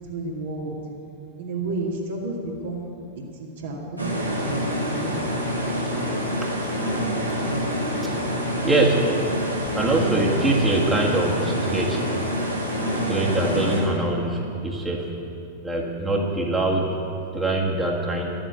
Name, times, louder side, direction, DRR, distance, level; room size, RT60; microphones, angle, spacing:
voice 1, 0.1-0.7 1.4-2.9 3.4-5.5, right 2 dB, 60° right, -2 dB, 2.1 m, -32 dB
sound 1, 4.0-13.8, equal, 90° right, 2.2 m, -26 dB
voice 2, 8.6-9.0 9.7-12.0 13.1-15.1 15.6-17.0 17.3-18.3, right 2 dB, 10° right, -2 dB, 1.7 m, -23 dB
12.0 x 7.8 x 7.9 m, 2.8 s
figure-of-eight pair, 95°, 0 cm